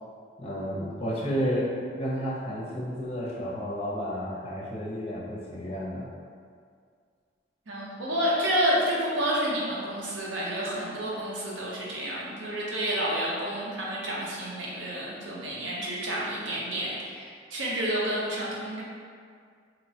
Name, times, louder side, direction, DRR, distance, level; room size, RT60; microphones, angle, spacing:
voice 1, 0.4-6.1, equal, 30° left, -6 dB, 0.4 m, -31 dB
voice 2, 7.7-18.8, equal, 90° right, -5 dB, 0.6 m, -29 dB
2.9 x 2.1 x 2.6 m, 2.1 s
head